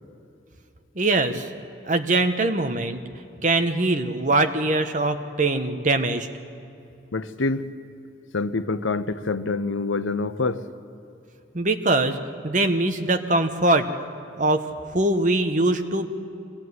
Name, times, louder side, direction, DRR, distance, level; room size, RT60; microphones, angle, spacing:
voice 1, 0.9-1.5 1.8-3.0 3.4-6.3 11.5-12.2 12.4-13.9 14.4-16.1, right 2 dB, 40° right, 7 dB, 1.2 m, -22 dB
voice 2, 7.1-7.7 8.3-10.6, left 3 dB, 90° left, 12 dB, 0.9 m, -26 dB
24.0 x 16.0 x 9.7 m, 2.7 s
head